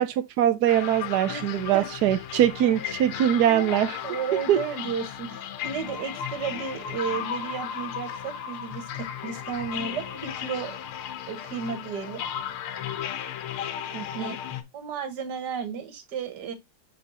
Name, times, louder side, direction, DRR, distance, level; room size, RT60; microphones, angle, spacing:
voice 1, 0.0-4.0 4.5-4.6 13.9-14.3, right 11 dB, 70° right, 0.9 m, -23 dB
sound 1, 0.7-14.6, left 9 dB, 80° left, 1.8 m, -35 dB
voice 2, 4.0-10.8 11.3-12.2 14.2-14.4 14.7-16.5, right 6 dB, 50° right, 1.9 m, -33 dB
7.0 x 5.2 x 2.9 m
omnidirectional pair, 2.4 m